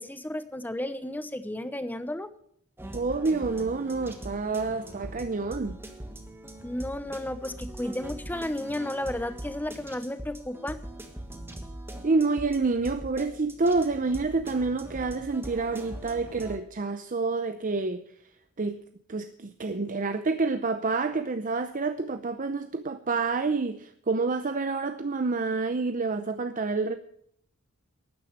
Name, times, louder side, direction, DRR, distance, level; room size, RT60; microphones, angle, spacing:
voice 1, 0.0-2.3 6.6-10.8, left 1 dB, 10° left, 0.9 m, -33 dB
sound 1, 2.8-16.6, right 1 dB, 10° right, 1.5 m, -42 dB
voice 2, 2.9-5.8 12.0-18.0 18.6-18.8 19.1-27.0, right 3 dB, 35° right, 0.6 m, -28 dB
12.0 x 9.7 x 7.9 m
head